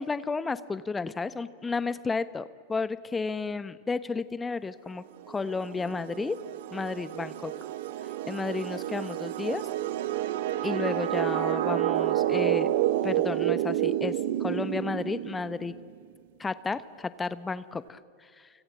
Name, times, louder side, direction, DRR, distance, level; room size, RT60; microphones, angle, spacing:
voice 1, 0.0-6.4 6.7-7.5 8.3-9.7 10.6-12.7 13.0-15.7 16.4-18.5, left 4 dB, 15° left, 16 dB, 0.9 m, -32 dB
sound 1, 5.3-15.8, right 13 dB, 55° right, 1.1 m, -29 dB
29.5 x 25.0 x 7.6 m, 2.1 s
figure-of-eight pair, 90°, 0 cm